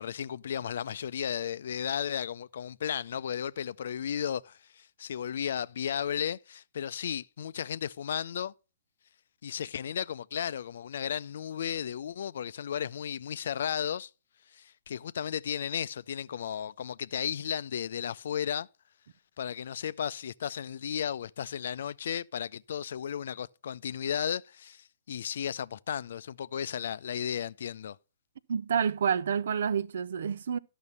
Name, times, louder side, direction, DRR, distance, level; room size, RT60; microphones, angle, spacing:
voice 1, 0.0-8.5 9.4-14.1 14.5-18.7 19.4-28.0, left 8 dB, 65° left, 0.5 m, -34 dB
voice 2, 28.5-30.6, right 7 dB, 65° right, 0.5 m, -28 dB
12.0 x 6.1 x 5.5 m
hypercardioid pair, 125°, 0 cm